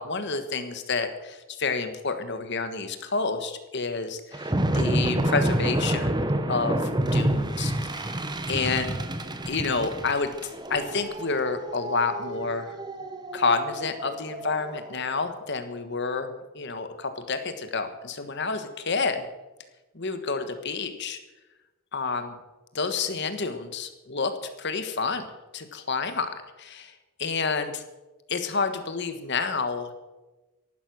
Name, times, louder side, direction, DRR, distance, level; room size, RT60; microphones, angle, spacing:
voice 1, 0.0-6.2 6.5-8.9 9.5-12.7 13.3-19.2 19.9-21.2 21.9-22.3 22.7-24.3 24.6-25.2 25.5-26.3 26.6-26.9 27.2-27.8 28.3-29.9, left 4 dB, 50° left, 9 dB, 1.4 m, -29 dB
sound 1, 4.3-14.9, right 1 dB, 20° right, 0.9 m, -28 dB
14.5 x 11.5 x 6.3 m, 1.1 s
head